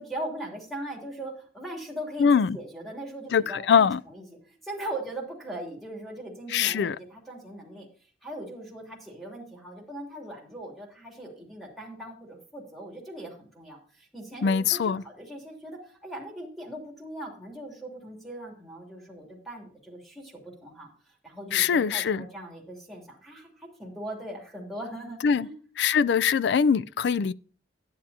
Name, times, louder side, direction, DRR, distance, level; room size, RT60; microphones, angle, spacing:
voice 1, 0.0-7.9 8.2-20.3 20.6-20.9 21.2-25.5, right 1 dB, ahead, 3.1 m, -40 dB
voice 2, 2.2-2.6 3.3-4.0 6.5-7.0 14.4-15.0 21.5-22.3 25.2-25.5 25.8-27.3, left 6 dB, 65° left, 0.3 m, -22 dB
11.0 x 10.0 x 2.8 m
head